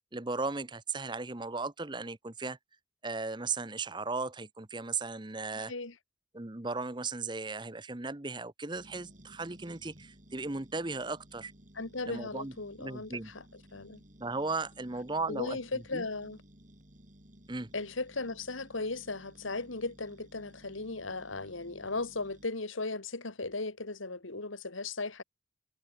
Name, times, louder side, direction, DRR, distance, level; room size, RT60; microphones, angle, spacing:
voice 1, 0.1-2.6 3.0-5.7 6.3-11.5 12.1-12.5 12.8-13.3 14.2-16.1 17.5-17.7, right 3 dB, 20° right, 0.9 m, -36 dB
voice 2, 5.5-6.0 11.7-13.4 13.7-14.0 15.3-16.4 17.7-25.2, left 3 dB, 80° left, 2.2 m, -37 dB
sound 1, 8.7-22.5, equal, 40° right, 5.2 m, -57 dB
head